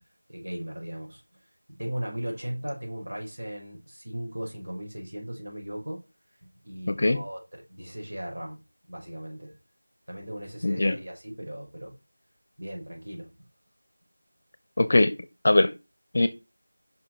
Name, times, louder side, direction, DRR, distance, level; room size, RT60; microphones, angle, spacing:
voice 1, 0.3-1.2 1.8-6.0 6.6-8.6 8.9-9.5 10.1-11.9 12.6-13.3, equal, 65° right, 4.4 m, -37 dB
voice 2, 6.9-7.2 10.6-11.0 14.8-15.2 15.4-15.7 16.1-16.3, left 2 dB, 35° left, 0.8 m, -21 dB
5.7 x 5.1 x 5.7 m
figure-of-eight pair, 175°, 0 cm